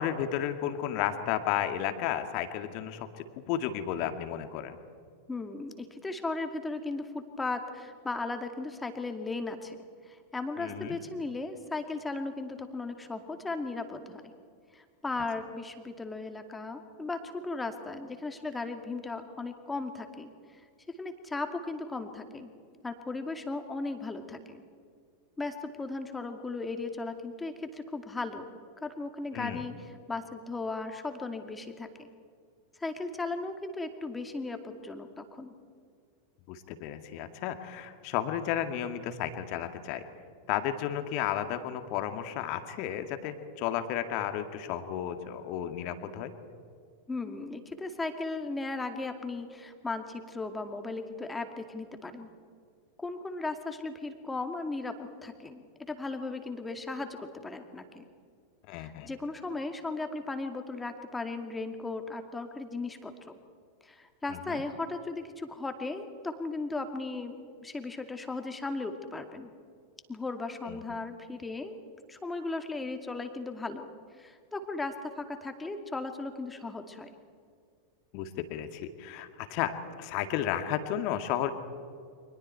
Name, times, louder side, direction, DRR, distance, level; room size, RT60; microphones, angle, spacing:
voice 1, 0.0-3.1 3.5-4.8 10.6-11.0 29.3-29.6 36.5-40.0 40.5-46.3 58.7-59.1 64.3-64.6 70.7-70.8 78.1-81.5, left 10 dB, 45° left, 8 dB, 2.0 m, -33 dB
voice 2, 5.3-9.8 10.1-14.3 14.7-22.5 22.8-24.6 25.4-28.5 28.8-32.1 32.8-35.5 47.1-52.3 53.0-58.1 58.8-63.4 63.8-69.5 70.1-71.8 72.1-73.9 74.2-77.1, left 3 dB, 10° left, 6 dB, 2.3 m, -36 dB
30.0 x 25.0 x 4.6 m, 2.1 s
figure-of-eight pair, 90°, 0 cm